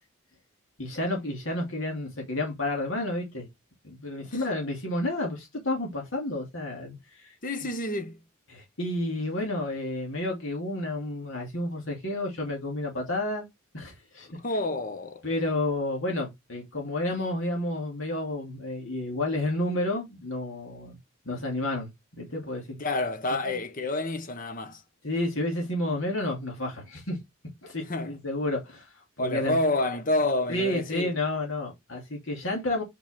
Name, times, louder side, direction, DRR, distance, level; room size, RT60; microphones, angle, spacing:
voice 1, 0.8-3.5 3.8-7.4 8.5-13.5 13.7-14.3 15.2-21.0 21.2-22.8 25.0-27.2 27.6-29.6 30.5-32.8, left 1 dB, 65° left, 2.8 m, -31 dB
voice 2, 7.4-8.2 14.3-15.2 22.8-24.8 27.9-28.2 29.2-31.1, left 2 dB, 40° left, 1.0 m, -29 dB
6.0 x 5.5 x 3.7 m
head